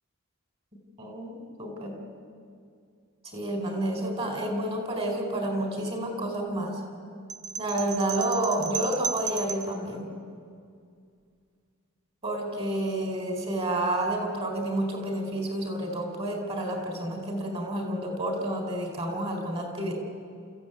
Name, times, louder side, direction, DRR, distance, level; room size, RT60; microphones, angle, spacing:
voice 1, 1.0-1.9 3.3-6.8 7.6-10.1 12.2-19.9, right 1 dB, 25° right, 3 dB, 4.3 m, -30 dB
sound 1, 7.3-9.8, right 5 dB, 80° right, 1.0 m, -34 dB
29.5 x 15.0 x 9.3 m, 2.3 s
head